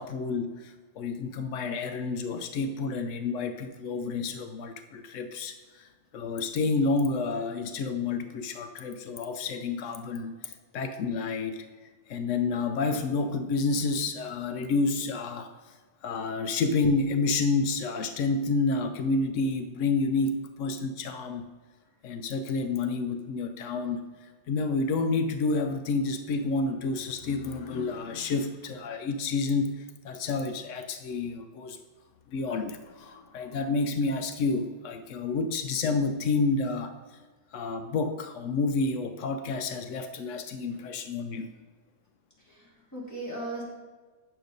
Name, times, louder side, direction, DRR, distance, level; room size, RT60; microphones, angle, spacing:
voice 1, 0.0-21.5 22.0-31.8 32.3-37.2 37.5-41.5, left 3 dB, 90° left, 8 dB, 0.6 m, -29 dB
voice 2, 42.4-43.6, right 2 dB, 10° left, -7 dB, 2.8 m, -37 dB
9.0 x 6.7 x 5.2 m, 1.4 s
omnidirectional pair, 2.0 m